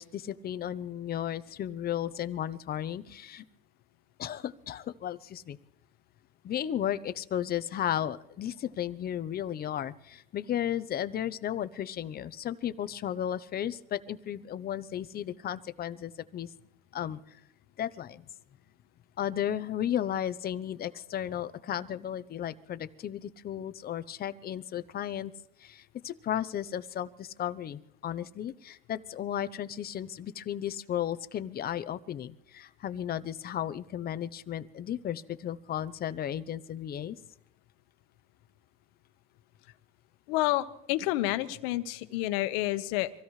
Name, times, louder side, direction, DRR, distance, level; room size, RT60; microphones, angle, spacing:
voice 1, 0.0-3.4 4.2-5.6 6.4-16.5 16.9-17.4 17.8-18.2 19.2-25.3 25.6-37.2, left 10 dB, 30° left, 13 dB, 0.7 m, -34 dB
voice 2, 40.3-43.1, left 16 dB, 75° left, 11 dB, 1.2 m, -29 dB
25.5 x 16.5 x 3.2 m, 0.81 s
supercardioid pair, 130°, 30 cm